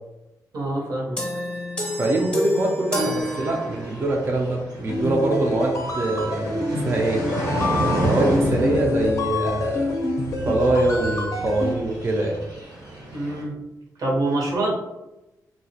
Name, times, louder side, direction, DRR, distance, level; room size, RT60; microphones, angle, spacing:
voice 1, 0.5-1.2 13.1-13.6 14.0-14.7, right 2 dB, 70° right, -3 dB, 0.7 m, -25 dB
sound 1, 1.2-4.2, left 1 dB, 15° left, 0.6 m, -29 dB
voice 2, 2.0-7.2 8.1-10.0 10.4-12.4, right 2 dB, 35° right, -1 dB, 0.4 m, -23 dB
sound 2, 3.2-13.4, right 2 dB, 90° right, 1.0 m, -30 dB
sound 3, 4.9-11.7, left 2 dB, 50° left, 0.4 m, -27 dB
2.3 x 2.0 x 2.6 m, 0.96 s
cardioid pair, 80°, 7 cm